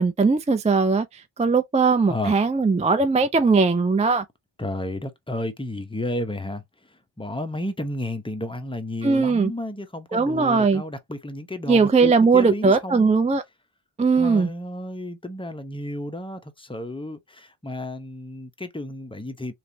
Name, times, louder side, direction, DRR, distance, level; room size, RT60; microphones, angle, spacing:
voice 1, 0.0-4.2 9.0-9.5 10.1-10.8 11.7-13.4 14.0-14.5, right 4 dB, 15° right, 0.3 m, -19 dB
voice 2, 4.6-6.6 6.9-13.2 14.2-19.5, left 1 dB, 10° left, 0.8 m, -32 dB
3.2 x 2.5 x 2.7 m
cardioid pair, 50°, 50 cm